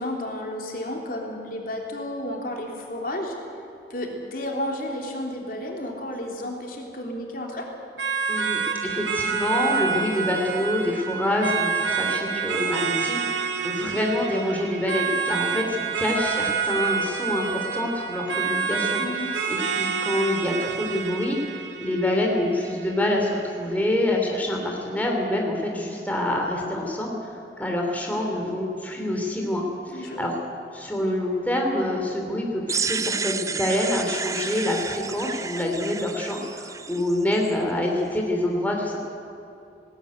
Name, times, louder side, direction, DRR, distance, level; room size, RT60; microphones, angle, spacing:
voice 1, 0.0-3.3 3.9-7.7 19.0-19.5 29.9-30.3, left 1 dB, 55° left, 0 dB, 3.4 m, -32 dB
sound 1, 8.0-22.9, right 6 dB, 90° right, 2.1 m, -28 dB
voice 2, 8.3-30.4 30.7-39.0, left 1 dB, 10° left, 0 dB, 2.9 m, -26 dB
sound 2, 32.7-37.5, right 5 dB, 20° right, 0.6 m, -31 dB
20.0 x 18.5 x 9.3 m, 2.7 s
head